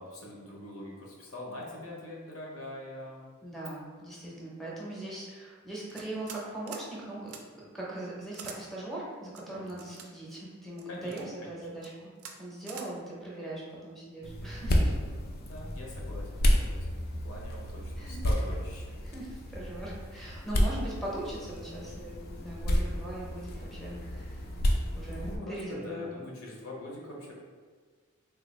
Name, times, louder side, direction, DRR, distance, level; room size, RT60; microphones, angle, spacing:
voice 1, 0.0-3.3 9.6-9.9 10.9-11.1 11.4-11.6 14.9-19.0 25.1-27.3, left 1 dB, 70° left, -2 dB, 0.7 m, -43 dB
voice 2, 3.4-11.9 12.4-14.9 18.0-18.2 19.0-24.4 25.0-26.1, right 1 dB, ahead, -5 dB, 0.6 m, -40 dB
sound 1, 5.9-6.4 6.7-6.9 7.3-7.4 8.3-8.6 9.3-10.1 10.8-11.2 11.8-11.9 12.2-12.4 12.7-12.9, right 6 dB, 80° right, 0.4 m, -45 dB
sound 2, 14.2-25.4, equal, 45° left, 0.4 m, -31 dB
3.4 x 2.3 x 3.1 m, 1.5 s
head